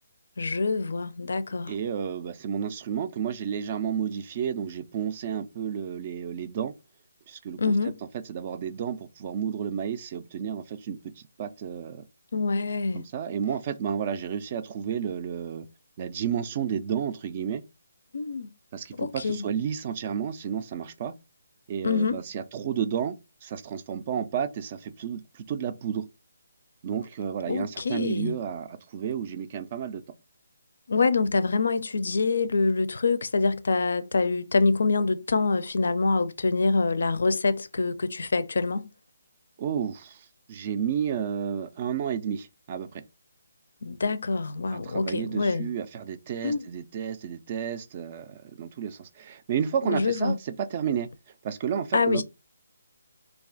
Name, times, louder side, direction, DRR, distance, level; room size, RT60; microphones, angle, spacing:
voice 1, 0.4-1.7 7.6-8.0 12.3-13.1 18.1-18.5 19.0-19.4 21.8-22.2 27.5-28.3 30.9-38.9 43.8-45.7 46.4-46.6 49.8-50.4 51.9-52.2, left 3 dB, 65° left, 0.4 m, -25 dB
voice 2, 1.7-6.7 7.3-7.7 8.3-11.0 11.4-12.0 12.9-15.7 16.0-17.6 18.7-21.1 21.7-26.0 26.8-30.0 39.6-43.0 44.7-51.1 51.4-52.2, right 8 dB, 30° right, 0.3 m, -31 dB
2.4 x 2.3 x 3.8 m
hypercardioid pair, 165°, 0 cm